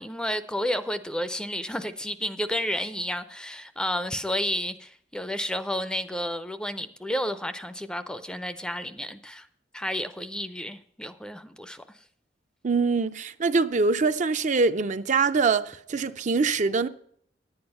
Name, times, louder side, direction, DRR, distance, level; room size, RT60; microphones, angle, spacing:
voice 1, 0.0-9.5 9.7-11.8, equal, 5° left, 0.5 m, -31 dB
voice 2, 12.6-16.9, right 4 dB, 45° right, 0.5 m, -24 dB
11.0 x 8.8 x 5.5 m
head